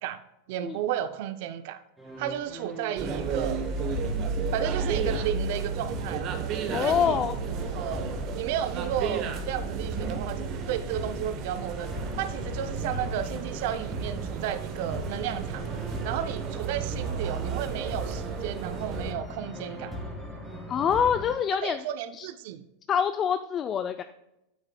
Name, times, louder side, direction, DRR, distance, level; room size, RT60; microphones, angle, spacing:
voice 1, 0.5-1.8 2.2-3.6 4.5-6.3 6.8-7.2 7.7-11.9 12.2-15.6 16.0-19.9 21.6-22.6, right 11 dB, 65° right, 11 dB, 0.5 m, -33 dB
sound 1, 2.0-21.3, left 1 dB, 10° right, 2.2 m, -40 dB
sound 2, 3.0-19.1, right 5 dB, 45° right, 1.0 m, -33 dB
voice 2, 6.7-7.4 20.7-21.8 22.2-22.3 22.9-24.0, left 8 dB, 35° left, 9 dB, 0.4 m, -25 dB
9.3 x 7.8 x 2.2 m, 0.88 s
hypercardioid pair, 105°, 0 cm